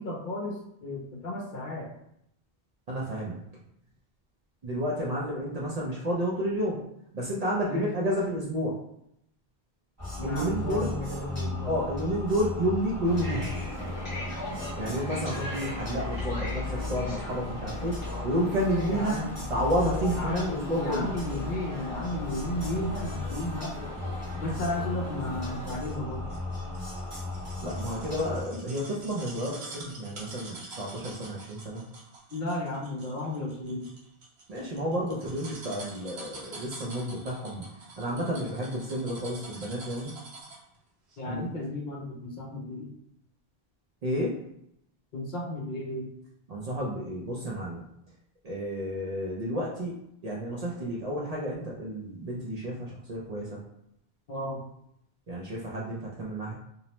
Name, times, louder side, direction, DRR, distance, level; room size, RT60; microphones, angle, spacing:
voice 1, 0.0-1.9 7.7-7.9 10.2-11.8 18.9-19.3 20.1-23.9 24.4-26.3 32.3-33.9 41.2-43.0 45.1-46.1 54.3-54.6, left 1 dB, 60° left, -1 dB, 0.6 m, -34 dB
voice 2, 2.9-3.4 4.6-6.8 7.1-8.8 10.2-10.9 11.6-13.5 14.8-19.2 19.5-21.1 27.6-31.8 34.5-37.7 38.0-40.1 41.3-41.5 44.0-44.4 46.5-47.8 48.4-53.6 55.3-56.5, equal, 55° right, -5 dB, 0.5 m, -31 dB
sound 1, 10.0-28.4, left 2 dB, 15° right, 0.9 m, -36 dB
sound 2, 13.0-25.8, equal, 25° left, 0.7 m, -40 dB
sound 3, 25.6-40.7 41.1-41.2, right 2 dB, 85° right, 1.0 m, -46 dB
2.6 x 2.0 x 2.9 m, 0.76 s
omnidirectional pair, 1.0 m